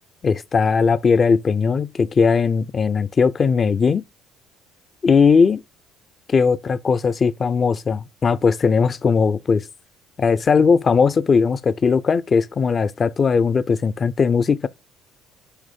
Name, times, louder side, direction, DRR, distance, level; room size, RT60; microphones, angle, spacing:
voice 1, 0.2-4.0 5.0-5.6 6.3-9.7 10.2-14.7, left 5 dB, 40° left, 0.4 m, -18 dB
6.4 x 3.1 x 5.1 m
hypercardioid pair, 70°, 0 cm